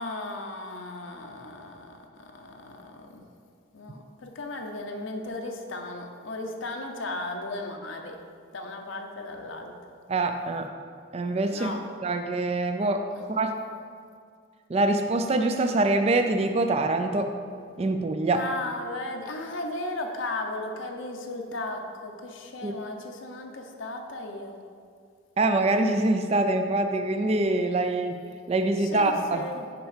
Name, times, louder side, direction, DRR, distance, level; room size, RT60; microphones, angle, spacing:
voice 1, 0.0-2.0 2.3-3.2 3.7-8.2 8.5-9.7 11.5-11.8 18.3-24.6 28.9-29.6, left 2 dB, 75° left, 3 dB, 0.7 m, -35 dB
voice 2, 10.1-10.7 11.1-11.7 12.0-13.5 14.7-17.3 17.8-18.4 22.6-22.7 25.4-28.2 28.5-29.5, right 2 dB, 30° right, 6 dB, 0.3 m, -24 dB
5.9 x 5.4 x 4.9 m, 2.1 s
head